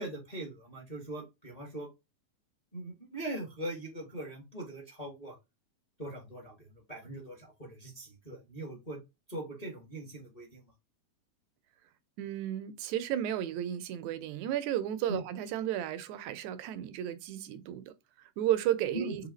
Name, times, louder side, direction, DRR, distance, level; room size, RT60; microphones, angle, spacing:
voice 1, 0.0-1.9 2.7-5.4 6.0-9.0 9.3-10.6 15.1-15.2 18.9-19.3, right 1 dB, 25° left, 0.8 m, -41 dB
voice 2, 12.2-19.3, right 11 dB, 80° right, 1.9 m, -33 dB
4.9 x 2.7 x 3.9 m
omnidirectional pair, 3.4 m